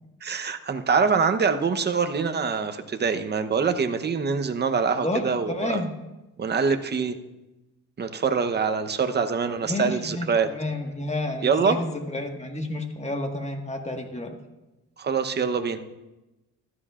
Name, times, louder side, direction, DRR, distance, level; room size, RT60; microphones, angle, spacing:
voice 1, 0.2-5.8 6.4-7.2 8.0-10.5 11.4-11.8 15.0-15.8, right 5 dB, 35° right, 7 dB, 0.9 m, -24 dB
voice 2, 5.0-5.9 9.6-14.3, left 2 dB, 20° left, 3 dB, 1.7 m, -30 dB
15.5 x 13.0 x 2.5 m, 1.0 s
cardioid pair, 90°, 30 cm